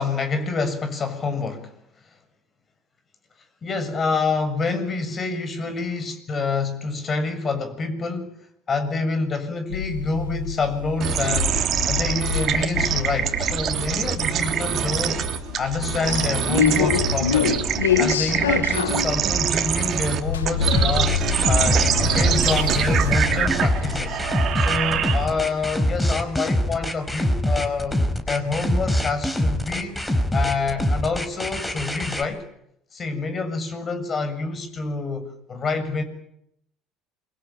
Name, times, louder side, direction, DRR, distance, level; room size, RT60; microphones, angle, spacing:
voice 1, 0.0-1.7 3.6-8.3 8.7-15.2 15.6-17.7 18.0-21.1 21.5-24.2 24.6-28.0 28.3-30.0 30.3-32.4 32.9-36.0, left 4 dB, 35° left, 9 dB, 7.1 m, -27 dB
sound 1, 9.7-25.4, left 8 dB, 85° left, 1.7 m, -27 dB
sound 2, 11.0-25.5, right 8 dB, 50° right, 3.0 m, -25 dB
sound 3, 20.7-32.2, equal, 10° left, 4.9 m, -24 dB
28.5 x 23.0 x 9.1 m, 0.77 s
hypercardioid pair, 65°, 0 cm